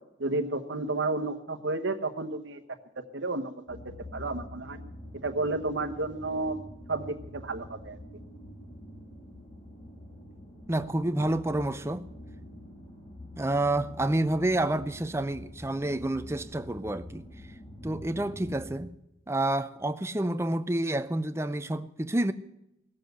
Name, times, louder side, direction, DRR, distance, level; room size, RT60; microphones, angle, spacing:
voice 1, 0.2-2.8 3.1-4.8 5.2-6.6 6.9-8.0, right 2 dB, 70° right, 1.1 m, -32 dB
sound 1, 3.7-18.7, left 1 dB, 25° left, 2.7 m, -46 dB
voice 2, 10.7-12.0 13.4-17.2 17.8-18.9 19.3-22.3, right 1 dB, 15° right, 0.5 m, -29 dB
18.0 x 7.7 x 7.9 m
head